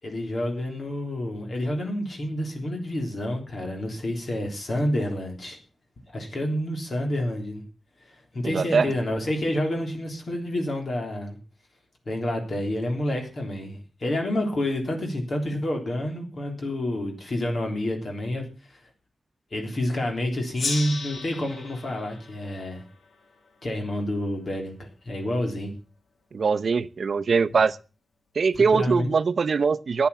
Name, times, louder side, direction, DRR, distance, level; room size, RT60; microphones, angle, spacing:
voice 1, 0.0-5.6 6.1-7.6 8.0-11.4 12.1-18.8 19.5-22.8 23.6-25.7 28.5-29.1, left 1 dB, 45° left, 3 dB, 3.5 m, -29 dB
voice 2, 8.4-8.9 26.3-27.8 28.4-30.1, right 5 dB, 55° right, 14 dB, 0.7 m, -22 dB
Gong, 20.5-23.7, left 4 dB, 75° left, 2.3 m, -35 dB
14.0 x 9.7 x 7.1 m, 0.35 s
wide cardioid pair, 160°, 0 cm